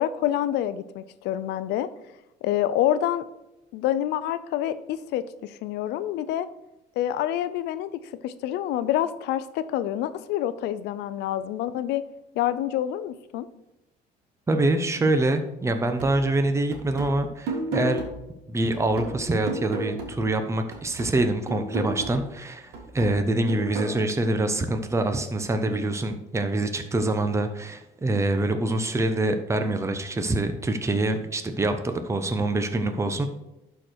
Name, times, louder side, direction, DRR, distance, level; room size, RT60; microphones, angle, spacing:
voice 1, 0.0-1.9 2.4-3.2 3.7-6.5 7.0-12.0 12.3-13.5, left 11 dB, 85° left, 14 dB, 0.6 m, -27 dB
voice 2, 14.5-18.0 18.5-33.3, right 2 dB, 15° right, 7 dB, 0.9 m, -25 dB
sound 1, 16.0-20.4 20.7-24.0, right 2 dB, 90° right, 2.1 m, -34 dB
11.5 x 4.6 x 4.5 m, 0.92 s
cardioid pair, 110°, 17 cm